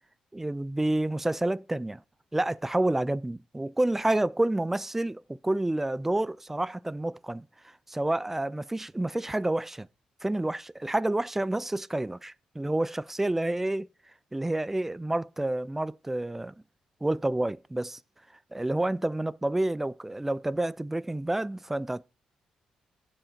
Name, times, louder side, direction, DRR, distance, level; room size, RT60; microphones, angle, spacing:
voice 1, 0.3-2.0 2.3-7.5 7.9-9.9 10.2-13.9 14.3-16.5 17.0-18.0 18.5-22.0, right 1 dB, 15° right, 0.3 m, -29 dB
7.2 x 5.0 x 5.7 m
supercardioid pair, 60°, 2 cm